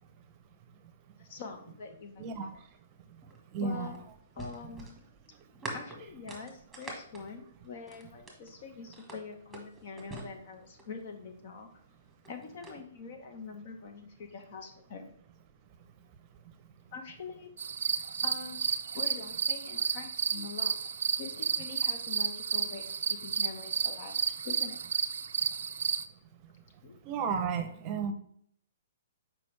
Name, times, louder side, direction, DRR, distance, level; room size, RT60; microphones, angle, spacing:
voice 1, 1.2-2.3 3.6-4.0 4.3-5.0 5.7-11.7 12.3-15.1 16.9-17.5 18.2-18.6 18.9-20.8 21.2-24.2 24.4-24.8 26.8-27.0, left 5 dB, 50° left, 6 dB, 1.1 m, -44 dB
voice 2, 2.2-2.5 3.5-3.9 27.1-28.1, right 5 dB, 30° right, 8 dB, 0.7 m, -32 dB
sound 1, 3.2-8.5 8.9-11.0 12.0-12.8, right 2 dB, 5° right, 1.3 m, -45 dB
sound 2, 17.6-26.0, right 6 dB, 80° right, 0.4 m, -32 dB
6.8 x 4.9 x 3.3 m, 0.66 s
hypercardioid pair, 150°, 0 cm